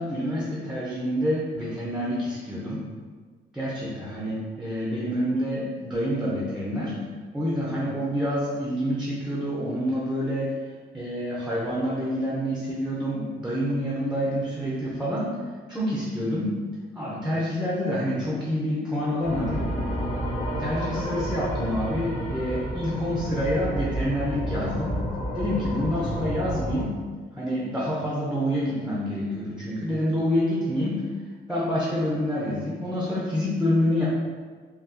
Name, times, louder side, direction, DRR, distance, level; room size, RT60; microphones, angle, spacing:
voice 1, 0.0-2.8 3.5-7.0 7.3-10.5 10.9-15.3 15.7-16.6 16.9-19.7 20.6-25.0 25.3-27.0 27.3-31.0 31.5-34.1, equal, 5° right, -6 dB, 0.7 m, -27 dB
sound 1, 19.2-26.8, equal, 40° left, 1.0 m, -30 dB
3.7 x 2.3 x 2.7 m, 1.5 s
cardioid pair, 90°, 20 cm